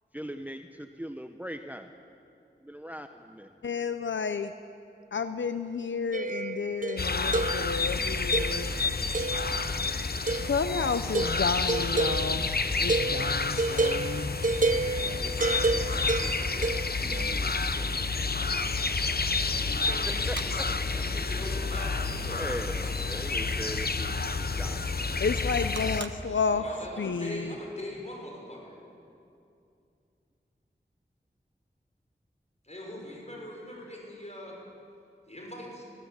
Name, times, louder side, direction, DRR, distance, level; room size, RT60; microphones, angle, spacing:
voice 1, 0.1-1.9 2.6-3.5 15.0-16.7 17.0-18.0 20.3-20.4 20.9-21.0 22.3-25.3, equal, 10° right, 6 dB, 0.8 m, -41 dB
voice 2, 3.6-4.5 5.1-8.8 10.4-14.5 25.2-26.6 27.0-27.5, left 5 dB, 90° left, 10 dB, 0.6 m, -31 dB
sound 1, 6.1-7.9 8.3-8.8 9.1-9.8 10.3-10.7 11.1-17.3, right 3 dB, 45° right, 0.7 m, -30 dB
sound 2, 7.0-26.0, left 4 dB, 55° left, 0.9 m, -29 dB
sound 3, 16.9-17.7 18.0-18.1 19.0-19.1 19.8-20.5 22.7-23.4 25.4-26.2, right 5 dB, 80° right, 0.9 m, -46 dB
voice 3, 19.1-22.8 26.2-28.8 32.6-34.6 35.3-35.8, left 1 dB, 35° left, -1 dB, 6.3 m, -42 dB
21.5 x 15.0 x 8.2 m, 2.6 s
wide cardioid pair, 45°, 19 cm